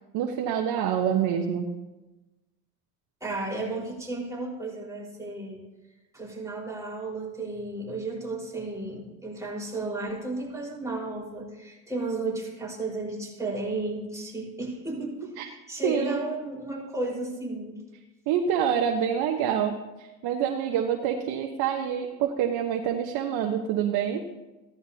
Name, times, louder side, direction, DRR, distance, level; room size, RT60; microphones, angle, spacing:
voice 1, 0.1-1.7 15.4-15.5 15.8-16.2 18.3-24.2, right 8 dB, 70° right, 2 dB, 1.1 m, -26 dB
voice 2, 3.2-5.6 6.1-17.8, right 2 dB, 10° right, -4 dB, 4.5 m, -33 dB
15.5 x 13.5 x 2.8 m, 1.1 s
supercardioid pair, 85°, 40 cm